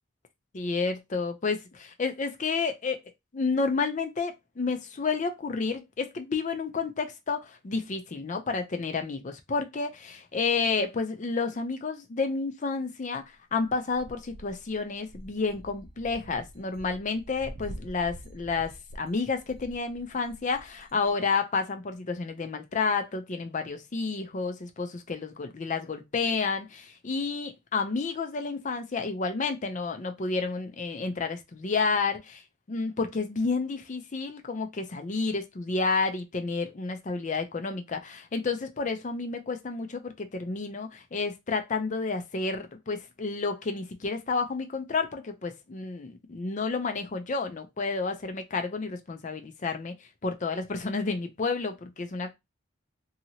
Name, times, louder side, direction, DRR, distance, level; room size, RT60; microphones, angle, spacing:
voice 1, 0.5-3.0 3.3-13.2 13.5-32.4 32.7-49.9 50.2-52.3, left 4 dB, 40° left, 0.5 m, -30 dB
sound 1, 13.6-21.1, right 1 dB, 80° right, 0.5 m, -46 dB
2.8 x 2.8 x 2.7 m
head